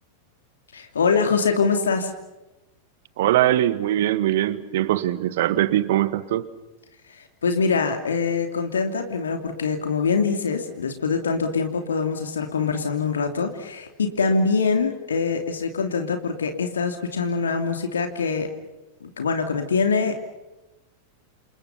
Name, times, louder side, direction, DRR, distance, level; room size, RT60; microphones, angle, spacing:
voice 1, 0.7-2.1 7.1-18.5 19.0-20.2, left 5 dB, 70° left, 5 dB, 2.8 m, -24 dB
voice 2, 3.2-6.5, right 13 dB, 55° right, 15 dB, 1.7 m, -21 dB
29.0 x 28.5 x 5.7 m, 1.0 s
figure-of-eight pair, 90°, 0 cm